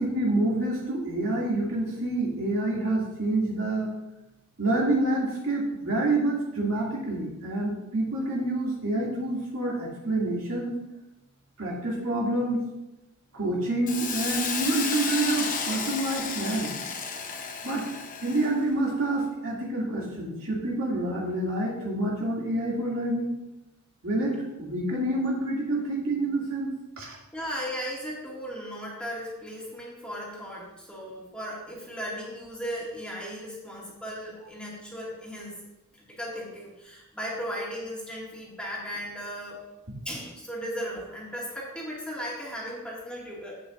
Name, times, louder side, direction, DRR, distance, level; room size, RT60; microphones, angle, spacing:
voice 1, 0.0-3.9 4.6-10.8 11.6-12.6 13.3-16.7 17.6-17.8 18.2-23.3 24.0-27.2, right 2 dB, 70° right, -4 dB, 2.6 m, -27 dB
Hiss, 13.9-18.6, left 6 dB, 40° left, 0.9 m, -32 dB
voice 2, 27.3-35.6 36.0-39.6 40.1-43.5, equal, 5° left, -5 dB, 2.1 m, -36 dB
11.0 x 8.5 x 2.6 m, 0.95 s
head